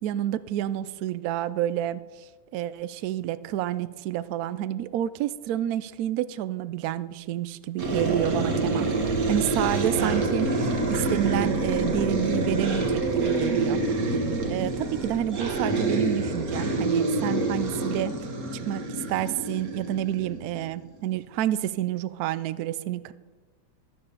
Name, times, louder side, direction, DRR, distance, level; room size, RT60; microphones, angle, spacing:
voice 1, 0.0-13.8 14.5-18.1 18.7-23.1, right 12 dB, 90° right, 15 dB, 0.8 m, -29 dB
sound 1, 7.8-20.7, right 2 dB, 50° right, 1.7 m, -27 dB
13.0 x 7.7 x 6.8 m, 1.3 s
omnidirectional pair, 2.2 m